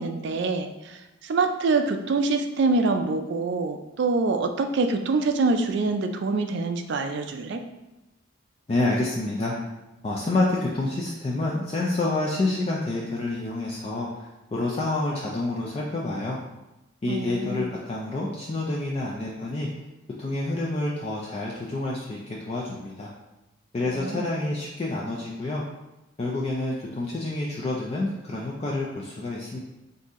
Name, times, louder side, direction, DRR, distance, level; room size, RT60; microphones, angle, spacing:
voice 1, 0.0-7.6 17.1-17.7 23.8-24.3, right 3 dB, 55° right, 6 dB, 0.4 m, -25 dB
voice 2, 8.7-9.5 10.0-16.4 17.0-19.7 20.2-23.1 23.7-25.6 26.2-29.6, left 2 dB, 30° left, -4 dB, 0.4 m, -28 dB
3.9 x 2.7 x 3.5 m, 0.98 s
head